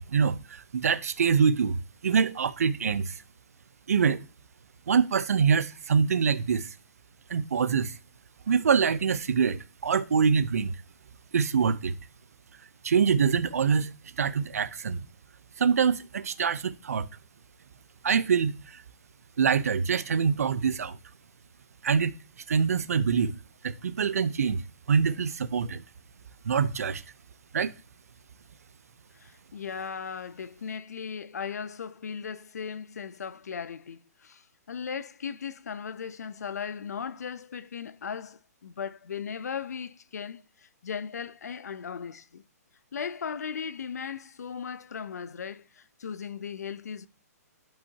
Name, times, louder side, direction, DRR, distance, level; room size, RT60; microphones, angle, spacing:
voice 1, 0.1-3.1 3.9-4.2 4.9-6.7 7.3-7.9 8.5-10.7 11.3-12.0 12.8-13.9 14.2-15.0 15.6-17.1 18.0-18.8 19.4-21.0 21.8-22.1 22.5-23.3 23.6-24.6 24.9-25.8 26.4-27.0 27.5-27.7, right 6 dB, 65° right, 0.8 m, -25 dB
voice 2, 29.1-42.4 42.9-47.1, left 6 dB, 75° left, 0.7 m, -37 dB
12.0 x 5.5 x 2.8 m
hypercardioid pair, 180°, 9 cm